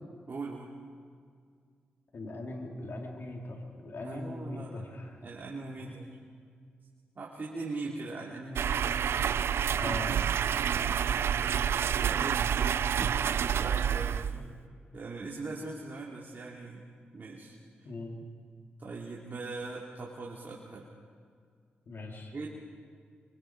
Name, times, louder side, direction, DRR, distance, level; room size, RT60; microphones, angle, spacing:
voice 1, 0.3-0.8 4.0-4.9 5.2-6.2 7.1-9.0 10.6-11.5 11.9-14.3 14.9-16.9 17.1-17.9 18.8-20.9 22.3-22.5, right 3 dB, 50° right, -4 dB, 3.3 m, -41 dB
voice 2, 2.1-5.2 5.8-6.0 8.2-8.3 9.8-10.1 14.3-14.5 17.8-18.2 21.9-22.3, left 2 dB, 60° left, 0 dB, 4.2 m, -40 dB
sound 1, 8.6-14.6, right 8 dB, 75° right, 0.4 m, -28 dB
25.5 x 24.0 x 5.2 m, 2.1 s
cardioid pair, 50°, 4 cm